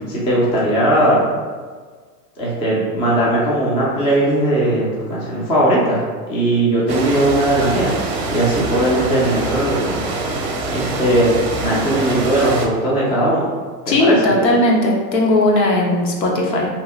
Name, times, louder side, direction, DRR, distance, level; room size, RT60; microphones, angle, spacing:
voice 1, 0.1-1.3 2.4-8.0 8.3-10.0 10.7-13.5 13.9-14.2, right 1 dB, 15° left, -6 dB, 0.4 m, -18 dB
sound 1, 6.9-12.7, right 2 dB, 40° right, 0.6 m, -24 dB
voice 2, 13.9-16.7, left 1 dB, 85° left, -1 dB, 1.0 m, -17 dB
2.8 x 2.4 x 3.4 m, 1.5 s
hypercardioid pair, 120°, 49 cm